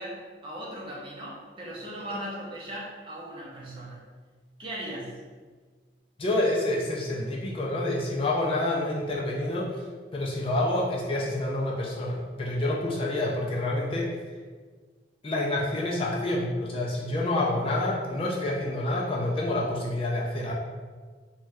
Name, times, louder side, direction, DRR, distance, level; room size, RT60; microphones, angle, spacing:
voice 1, 0.0-4.0 4.6-5.2, right 1 dB, 30° right, -5 dB, 0.6 m, -38 dB
voice 2, 6.2-9.8 10.1-14.1 15.2-20.5, left 1 dB, 30° left, -3 dB, 0.3 m, -28 dB
2.6 x 2.2 x 3.3 m, 1.5 s
head